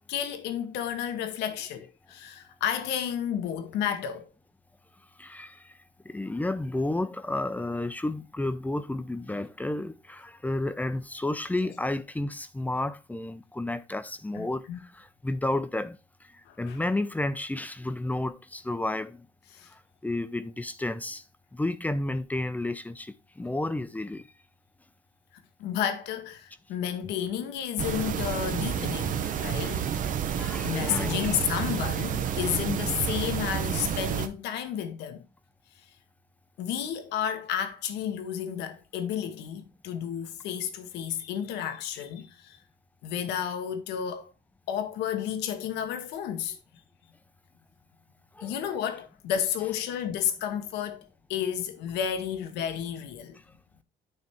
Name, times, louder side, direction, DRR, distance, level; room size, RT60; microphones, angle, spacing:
voice 1, 0.1-4.3 14.3-14.8 16.5-16.8 19.5-19.7 25.6-29.9 30.6-35.2 36.6-42.6 43.0-44.3 44.7-46.6 48.4-53.4, left 9 dB, 85° left, 1.1 m, -31 dB
voice 2, 5.2-5.8 6.0-19.3 19.7-21.2 21.5-24.3 29.2-29.3 29.6-29.8 30.3-31.3 48.3-48.6, left 2 dB, 10° left, 0.6 m, -32 dB
sound 1, 27.8-34.3, right 8 dB, 50° right, 0.8 m, -30 dB
9.5 x 3.4 x 4.3 m
cardioid pair, 110°, 17 cm